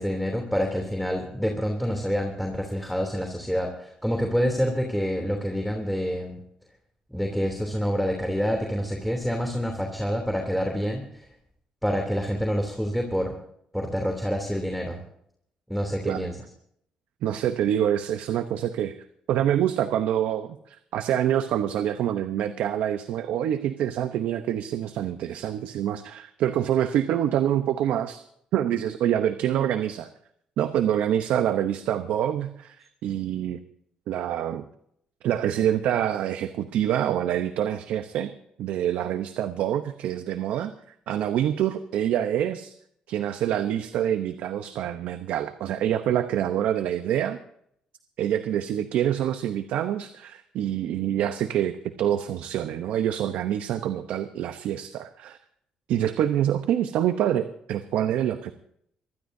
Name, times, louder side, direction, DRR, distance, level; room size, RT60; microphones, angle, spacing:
voice 1, 0.0-6.4 7.1-11.3 11.8-13.3 13.7-15.0 15.7-16.4, equal, ahead, 3 dB, 3.1 m, -27 dB
voice 2, 17.2-19.0 19.3-28.2 28.5-30.1 30.6-33.6 34.1-34.6 35.2-40.7 41.1-42.7 43.1-47.4 48.2-55.4 55.9-58.5, right 10 dB, 80° right, 9 dB, 0.9 m, -26 dB
23.5 x 15.0 x 2.7 m, 0.69 s
supercardioid pair, 70°, 3 cm